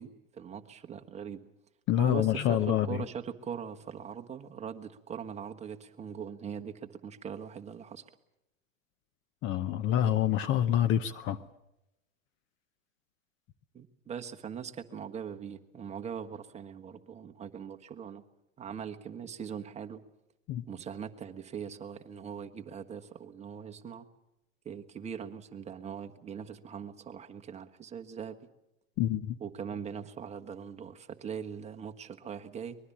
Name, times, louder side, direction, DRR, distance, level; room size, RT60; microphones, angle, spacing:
voice 1, 0.0-1.4 2.0-8.1 13.7-18.2 18.6-20.0 20.7-24.1 24.6-28.4 29.4-32.8, right 7 dB, 15° right, 5 dB, 1.4 m, -41 dB
voice 2, 1.9-3.0 9.4-11.4 20.5-20.7 29.0-29.4, left 11 dB, 30° left, 13 dB, 0.9 m, -27 dB
24.5 x 21.0 x 7.2 m, 0.88 s
hypercardioid pair, 115°, 39 cm